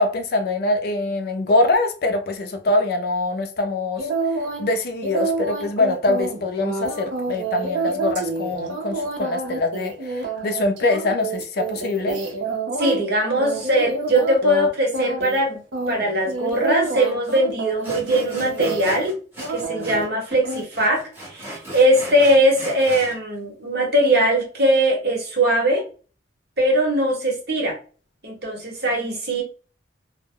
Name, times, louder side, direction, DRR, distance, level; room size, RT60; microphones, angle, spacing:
voice 1, 0.0-4.1 4.6-12.2, left 2 dB, 55° left, 0.4 m, -23 dB
sound 1, 4.0-4.7 5.0-13.0 13.4-14.7 14.9-15.4 15.7-19.1 19.4-20.0 20.4-20.6, right 3 dB, 75° right, 0.6 m, -28 dB
voice 2, 12.8-19.1 19.5-25.8 26.6-27.8 28.2-29.4, right 1 dB, 55° right, 0.9 m, -20 dB
Sawing, 16.8-16.9 17.2-17.4 17.8-20.1 20.3-23.2, right 1 dB, 10° right, 1.0 m, -37 dB
2.1 x 2.0 x 3.5 m
head